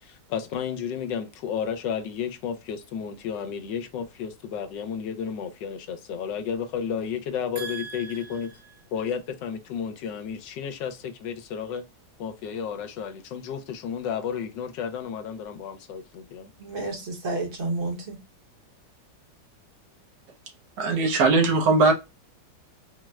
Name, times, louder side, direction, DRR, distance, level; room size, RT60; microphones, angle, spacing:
voice 1, 0.0-8.5 8.9-11.9 12.2-16.5, left 7 dB, 85° left, 1.3 m, -32 dB
voice 2, 7.6-8.7 16.6-18.2, right 2 dB, 40° right, 1.0 m, -32 dB
voice 3, 20.8-21.9, right 3 dB, 80° right, 1.4 m, -19 dB
4.4 x 2.1 x 2.3 m
omnidirectional pair, 1.9 m